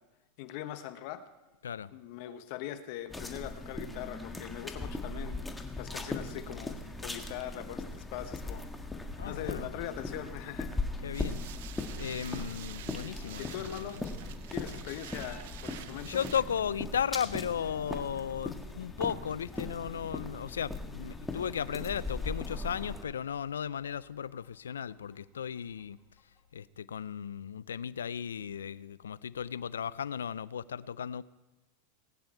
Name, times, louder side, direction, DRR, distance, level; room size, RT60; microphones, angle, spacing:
voice 1, 0.4-1.2 1.9-5.4 5.8-7.8 8.1-8.6 9.2-10.7 13.4-14.0 14.5-16.2, left 12 dB, 60° left, 10 dB, 1.1 m, -41 dB
sound 1, 3.1-23.0, left 2 dB, 10° left, 1.7 m, -39 dB
voice 2, 9.2-9.7 11.0-11.4 12.0-14.1 16.0-26.0 26.5-31.2, left 8 dB, 85° left, 19 dB, 0.4 m, -35 dB
sound 2, 11.1-16.4, right 12 dB, 70° right, 0.7 m, -48 dB
Chicken rooster, 12.8-13.4 14.5-15.6 16.5-18.0 18.8-19.9 20.9-22.0 23.1-26.4, left 4 dB, 25° left, 4.2 m, -61 dB
20.0 x 9.6 x 4.5 m, 1.1 s
hypercardioid pair, 100°, 0 cm